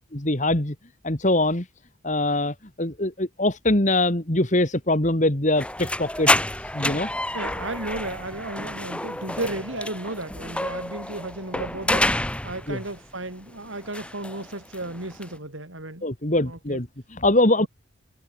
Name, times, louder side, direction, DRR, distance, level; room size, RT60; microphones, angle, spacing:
voice 1, 0.1-0.7 1.0-1.7 2.0-6.4 6.7-7.1 12.7-12.8 16.0-17.7, left 1 dB, 35° left, 2.3 m, -23 dB
sound 1, 5.6-13.0 13.3-15.4, left 1 dB, 5° left, 4.0 m, -29 dB
voice 2, 7.3-16.1 16.4-16.8 17.6-17.7, right 2 dB, 70° right, 6.1 m, -34 dB
head